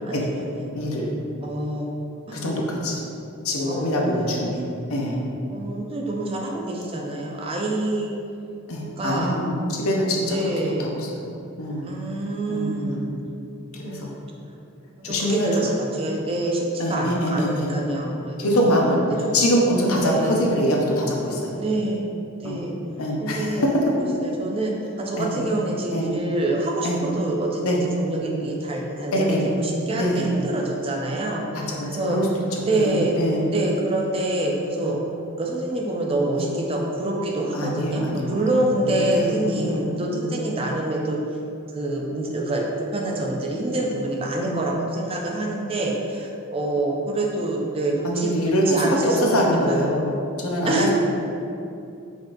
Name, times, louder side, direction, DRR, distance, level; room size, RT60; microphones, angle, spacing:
voice 1, 0.1-0.7 1.4-1.9 2.3-2.4 3.7-4.5 5.5-8.1 9.0-9.4 10.3-10.9 11.8-13.0 13.7-14.1 15.1-18.7 19.2-19.3 19.9-20.4 21.6-22.0 22.4-22.7 23.2-24.7 25.0-32.2 32.6-33.1 33.5-35.0 35.4-41.2 41.7-42.7 42.9-49.4 49.7-49.9 50.6-50.9, right 2 dB, 25° right, 0 dB, 0.4 m, -26 dB
voice 2, 0.7-1.1 2.3-3.0 3.4-4.6 4.9-5.2 8.7-10.4 10.8-10.9 11.6-11.9 12.5-13.0 13.9-14.1 15.0-15.5 16.8-17.7 18.4-19.0 19.3-21.5 22.4-22.6 23.0-23.8 25.2-25.4 25.9-26.1 26.8-27.0 27.6-27.8 29.1-29.4 29.9-30.3 31.5-32.3 32.7-33.5 34.8-34.9 36.4-36.5 37.5-38.5 38.8-40.5 44.4-44.7 48.0-50.1 50.4-50.9, equal, 85° left, -1 dB, 0.7 m, -24 dB
5.1 x 3.7 x 2.6 m, 2.6 s
head